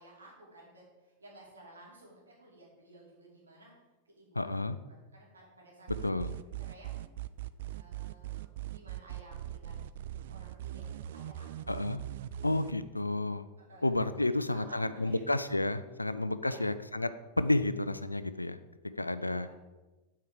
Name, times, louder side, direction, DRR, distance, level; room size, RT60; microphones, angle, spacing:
voice 1, 0.0-3.7 4.1-4.5 4.9-5.9 6.6-7.0 7.7-9.8 10.0-11.8 13.6-15.3 16.0-16.1 16.4-16.7 19.1-19.5, right 2 dB, 75° right, -3 dB, 2.8 m, -55 dB
voice 2, 4.4-4.8 6.0-6.3 11.7-12.0 12.4-13.5 13.8-18.6 19.0-19.5, left 2 dB, 85° left, 13 dB, 0.4 m, -31 dB
sound 1, 5.9-12.7, right 13 dB, 55° right, 0.3 m, -40 dB
7.5 x 4.7 x 6.7 m, 1.1 s
figure-of-eight pair, 90°, 0 cm